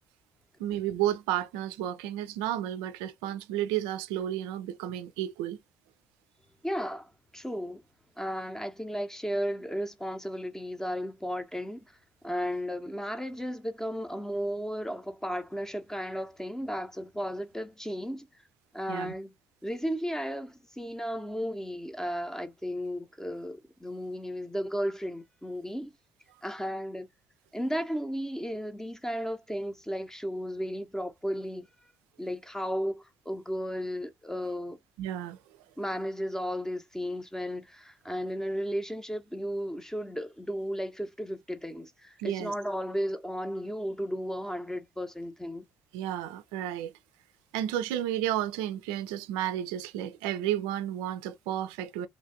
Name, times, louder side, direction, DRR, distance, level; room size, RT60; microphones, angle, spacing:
voice 1, 0.6-5.6 18.9-19.1 35.0-35.4 42.2-42.5 45.9-46.9 47.5-52.1, right 12 dB, 65° right, 0.4 m, -32 dB
voice 2, 6.6-7.8 8.2-12.0 12.2-18.3 18.7-19.3 19.6-25.9 26.4-27.1 27.5-31.7 32.2-34.8 35.8-45.7, equal, 5° left, 0.7 m, -34 dB
3.2 x 2.5 x 2.6 m
figure-of-eight pair, 50°, 9 cm